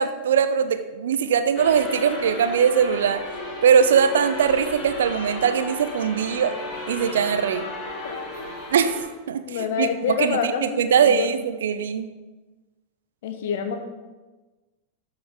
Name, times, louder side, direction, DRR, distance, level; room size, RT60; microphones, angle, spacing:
voice 1, 0.0-3.2 3.6-6.5 6.9-7.6 8.7-8.9 9.3-9.4 9.8-9.9 10.2-12.1, right 7 dB, 60° right, 11 dB, 0.6 m, -21 dB
sound 1, 1.5-9.0, left 2 dB, 30° left, 2.9 m, -34 dB
voice 2, 9.4-11.3 13.2-13.8, left 6 dB, 55° left, 7 dB, 1.1 m, -27 dB
13.0 x 5.7 x 3.9 m, 1.2 s
figure-of-eight pair, 90°, 0 cm